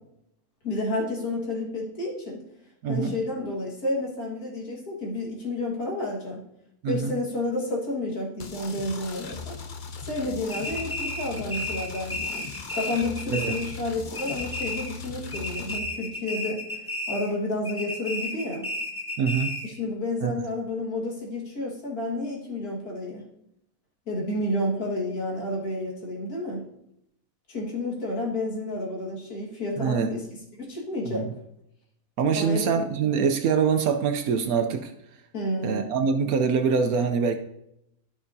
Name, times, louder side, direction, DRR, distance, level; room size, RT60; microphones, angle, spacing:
voice 1, 0.6-2.4 2.9-6.4 6.9-9.6 10.0-12.5 12.7-16.6 17.1-18.7 19.6-23.2 24.1-26.6 27.5-30.3 30.5-31.3 32.4-32.7 35.3-35.9, left 1 dB, 75° left, -3 dB, 2.3 m, -30 dB
voice 2, 2.8-3.1 6.8-7.1 13.3-13.6 19.2-19.6 20.2-20.3 29.8-30.1 31.0-31.3 32.2-34.9 35.6-37.4, right 6 dB, 75° right, 7 dB, 1.1 m, -24 dB
sound 1, 8.4-15.8, left 5 dB, 50° left, 0.6 m, -39 dB
sound 2, 10.5-13.9 14.1-15.0 15.3-17.4 17.6-19.8, left 2 dB, 10° left, 1.4 m, -33 dB
13.5 x 5.6 x 2.7 m, 0.78 s
omnidirectional pair, 1.6 m